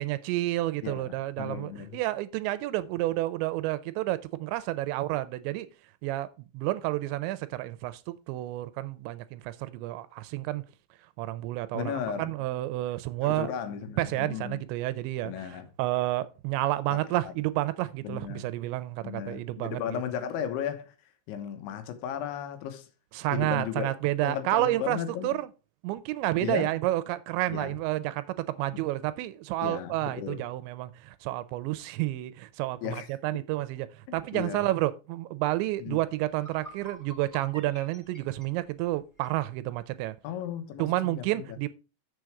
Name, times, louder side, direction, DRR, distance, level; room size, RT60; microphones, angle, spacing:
voice 1, 0.0-5.7 6.0-6.3 6.5-10.6 11.2-13.5 14.0-15.3 15.8-20.0 23.1-25.5 25.8-33.9 34.1-40.2 40.8-41.7, right 16 dB, 80° right, 2.8 m, -30 dB
voice 2, 0.8-2.0 11.7-12.3 13.2-14.6 15.2-15.7 16.9-17.3 18.0-18.5 19.0-20.9 21.3-22.9 23.3-23.9 24.2-25.4 26.4-26.7 27.5-27.8 28.7-28.8 29.6-30.4 32.8-33.1 34.3-34.7 35.8-36.0 40.2-41.4, left 9 dB, 85° left, 3.5 m, -35 dB
sound 1, 35.9-36.0 36.3-39.4, right 1 dB, 5° left, 1.6 m, -49 dB
7.7 x 6.9 x 4.7 m
omnidirectional pair, 5.3 m